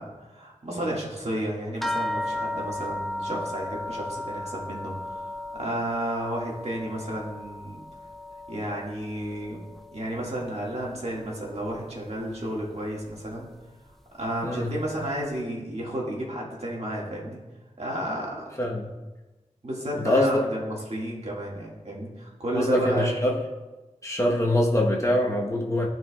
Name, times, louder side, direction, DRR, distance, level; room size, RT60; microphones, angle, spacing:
voice 1, 0.0-5.2 5.5-7.8 8.5-9.6 9.9-13.5 14.1-17.4 17.8-18.5 19.6-23.2, right 1 dB, 55° right, -3 dB, 1.8 m, -32 dB
sound 1, 1.8-10.6 10.9-11.8 12.6-12.7 13.1-13.2, left 1 dB, ahead, 0.4 m, -35 dB
voice 2, 14.4-14.7 18.6-18.9 20.0-20.5 22.5-23.4 24.0-25.9, left 1 dB, 25° left, -1 dB, 1.0 m, -24 dB
13.0 x 4.5 x 2.3 m, 1.2 s
wide cardioid pair, 50°, 13 cm